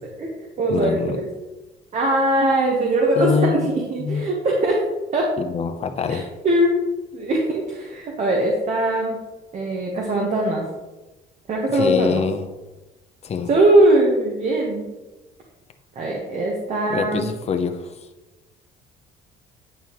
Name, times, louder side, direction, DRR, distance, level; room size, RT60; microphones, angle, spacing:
voice 1, 0.2-1.3 1.9-4.8 5.1-5.3 6.1-6.8 7.1-9.2 9.5-10.6 11.5-12.2 13.5-14.9 15.9-17.3, right 1 dB, 45° right, -1 dB, 1.4 m, -21 dB
voice 2, 0.7-1.2 3.1-3.7 4.0-4.2 5.4-6.3 11.7-12.4 13.2-13.5 16.9-17.9, left 6 dB, 40° left, 7 dB, 0.8 m, -24 dB
10.0 x 5.5 x 3.1 m, 1.1 s
cardioid pair, 110°, 17 cm